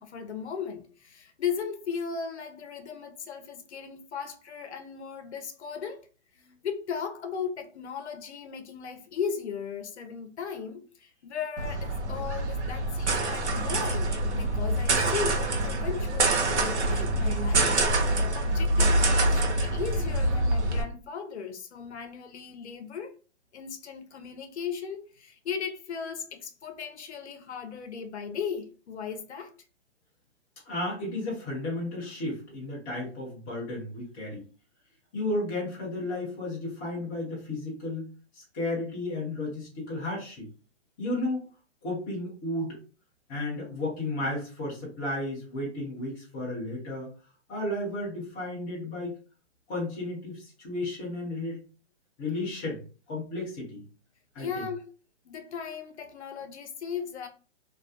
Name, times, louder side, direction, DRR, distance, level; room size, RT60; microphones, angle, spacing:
voice 1, 0.0-6.1 6.6-17.8 18.2-23.1 23.5-29.5 54.4-54.9 55.2-57.3, left 6 dB, 70° left, 0.7 m, -37 dB
sound 1, 11.6-20.8, right 2 dB, 75° right, 0.8 m, -25 dB
voice 2, 30.7-34.4 35.1-38.1 38.3-40.5 41.0-41.4 41.8-42.8 43.3-47.1 47.5-49.1 49.7-51.6 52.2-52.8 53.1-53.8 54.3-54.5, left 2 dB, 10° left, 0.3 m, -33 dB
2.4 x 2.1 x 2.4 m
hypercardioid pair, 130°, 35 cm